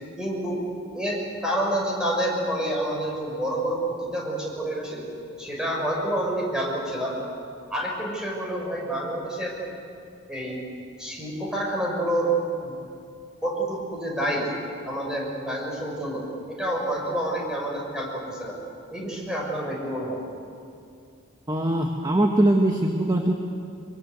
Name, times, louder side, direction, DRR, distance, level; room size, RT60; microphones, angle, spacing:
voice 1, 0.2-0.6 0.9-5.0 5.4-7.2 7.7-9.6 10.3-10.6 11.0-12.3 12.6-12.8 13.4-14.5 14.8-18.6 18.9-20.2, right 1 dB, 5° right, -2 dB, 5.8 m, -28 dB
voice 2, 21.5-23.3, right 1 dB, 20° right, 2 dB, 1.4 m, -21 dB
23.5 x 23.5 x 8.1 m, 2.5 s
head